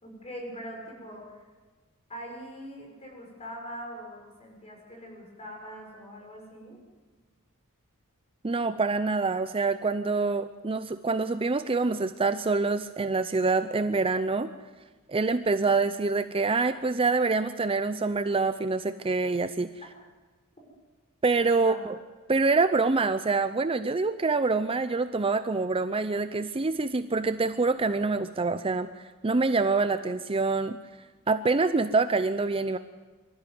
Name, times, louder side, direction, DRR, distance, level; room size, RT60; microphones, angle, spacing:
voice 1, 0.0-1.5 2.1-6.8 21.6-21.8, equal, 30° left, 0 dB, 6.5 m, -42 dB
voice 2, 8.4-14.5 15.1-19.7 21.2-21.9 22.3-30.8 31.3-32.8, right 3 dB, 25° right, 10 dB, 0.6 m, -26 dB
24.0 x 13.5 x 9.5 m, 1.3 s
head